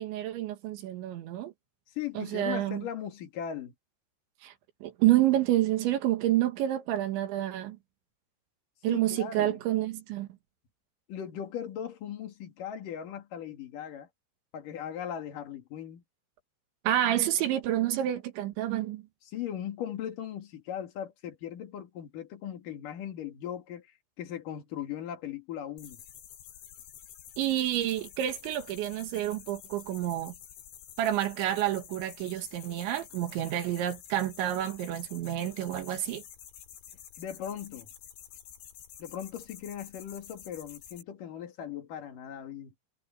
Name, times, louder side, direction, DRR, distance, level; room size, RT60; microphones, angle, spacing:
voice 1, 0.0-1.5 2.2-2.8 4.4-4.5 4.8-7.8 8.8-10.3 16.9-19.0 27.4-30.3 31.0-36.2, right 13 dB, 75° right, 4.0 m, -29 dB
voice 2, 1.9-3.7 8.9-9.6 11.1-14.1 14.5-16.0 19.3-23.9 24.2-26.0 37.2-37.9 39.0-42.7, left 9 dB, 50° left, 3.3 m, -38 dB
sound 1, 25.8-41.0, left 10 dB, 75° left, 4.8 m, -50 dB
omnidirectional pair, 5.5 m